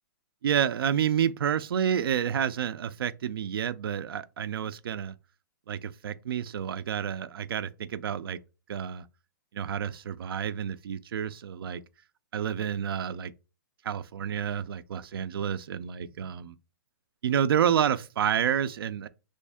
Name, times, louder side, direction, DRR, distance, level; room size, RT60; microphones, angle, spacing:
voice 1, 0.4-5.1 5.7-8.4 8.7-9.0 9.5-11.8 12.3-13.3 13.8-16.5 17.2-19.1, right 9 dB, 90° right, 0.4 m, -29 dB
3.1 x 2.6 x 3.4 m
hypercardioid pair, 165°, 12 cm